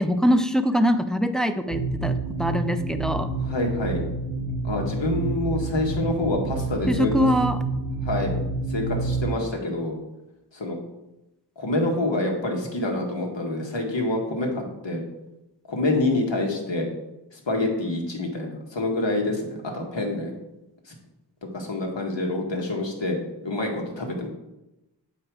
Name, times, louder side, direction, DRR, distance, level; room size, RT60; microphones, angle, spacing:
voice 1, 0.0-3.3 6.9-7.6, equal, ahead, 8 dB, 0.5 m, -23 dB
sound 1, 1.7-9.3, right 3 dB, 65° right, 0.9 m, -28 dB
voice 2, 3.4-4.0 4.6-7.3 8.0-8.3 8.7-10.0 10.5-10.8 11.6-15.0 15.7-16.9 17.3-20.3 20.9-21.0 21.5-23.2 23.4-24.3, left 2 dB, 85° left, 0 dB, 1.6 m, -27 dB
8.6 x 4.9 x 4.7 m, 0.95 s
wide cardioid pair, 60°, 44 cm